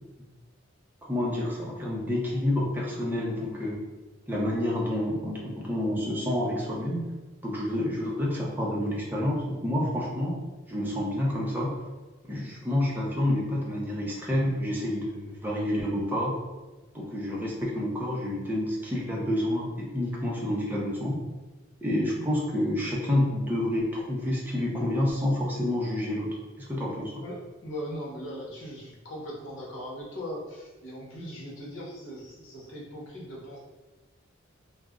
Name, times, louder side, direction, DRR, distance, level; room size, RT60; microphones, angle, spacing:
voice 1, 1.0-3.8 4.3-7.1 7.4-10.4 10.7-11.8 12.2-16.4 16.9-21.2 21.8-26.3 26.7-27.2, left 1 dB, 10° right, -4 dB, 0.5 m, -28 dB
voice 2, 27.2-33.6, equal, 65° left, -4 dB, 0.9 m, -39 dB
2.4 x 2.0 x 3.5 m, 1.2 s
head